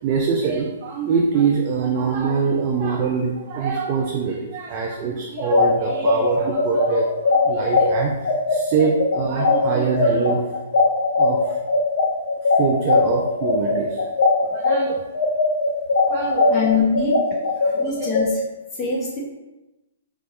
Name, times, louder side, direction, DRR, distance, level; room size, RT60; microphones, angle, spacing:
voice 1, 0.0-10.5 11.2-11.6 12.6-14.1 14.5-15.0 16.1-16.7 17.6-18.1, right 5 dB, 30° right, 0 dB, 0.4 m, -24 dB
sound 1, 5.4-14.8 15.1-18.2, left 3 dB, 75° left, 0.7 m, -19 dB
voice 2, 16.5-17.2 17.8-18.4 18.8-19.2, left 4 dB, 20° left, -6 dB, 1.1 m, -23 dB
3.9 x 2.3 x 3.6 m, 1.0 s
hypercardioid pair, 155°, 0 cm